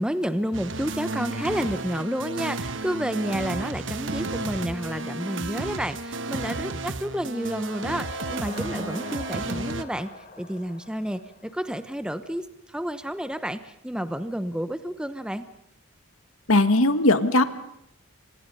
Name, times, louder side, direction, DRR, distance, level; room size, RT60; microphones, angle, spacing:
voice 1, 0.0-15.4, equal, 5° right, 10 dB, 0.9 m, -30 dB
sound 1, 0.5-9.8, right 3 dB, 60° right, 1.2 m, -32 dB
sound 2, 7.1-11.9, left 3 dB, 35° left, 2.3 m, -43 dB
voice 2, 16.5-17.4, left 2 dB, 75° left, 11 dB, 1.6 m, -19 dB
30.0 x 25.5 x 5.5 m, 0.78 s
head